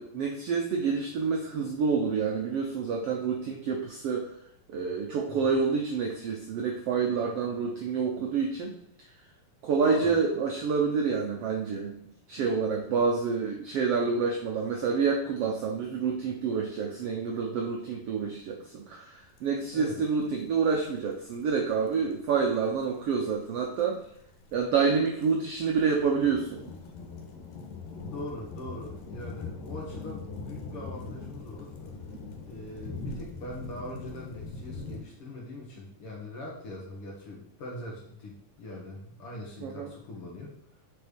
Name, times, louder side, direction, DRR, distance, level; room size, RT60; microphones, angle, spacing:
voice 1, 0.0-4.3 4.7-8.7 9.0-9.1 9.6-12.0 12.3-24.0 24.5-26.6 39.6-39.9, right 5 dB, 90° right, 1 dB, 1.3 m, -28 dB
sound 1, 19.4-19.5 19.6-35.0, left 4 dB, 90° left, 2.9 m, -42 dB
voice 2, 28.1-31.7 32.4-40.5, left 1 dB, 50° left, -2 dB, 2.1 m, -41 dB
8.2 x 4.5 x 5.2 m, 0.71 s
omnidirectional pair, 3.9 m